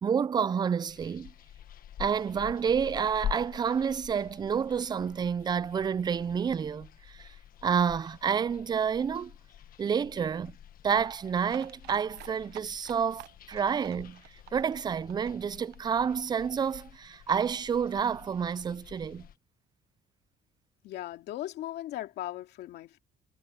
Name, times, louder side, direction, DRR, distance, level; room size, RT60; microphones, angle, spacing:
voice 1, 0.0-1.3 2.0-7.3 7.6-9.3 9.8-10.6 10.8-14.2 14.5-19.3, right 7 dB, 25° right, 0.4 m, -29 dB
sound 1, 0.9-19.4, left 10 dB, 60° left, 1.4 m, -46 dB
sound 2, 11.5-17.0 17.3-17.4 17.6-17.7 18.0-18.1, right 16 dB, 80° right, 0.8 m, -49 dB
voice 2, 20.8-23.0, left 14 dB, 75° left, 2.5 m, -38 dB
cardioid pair, 110°, 17 cm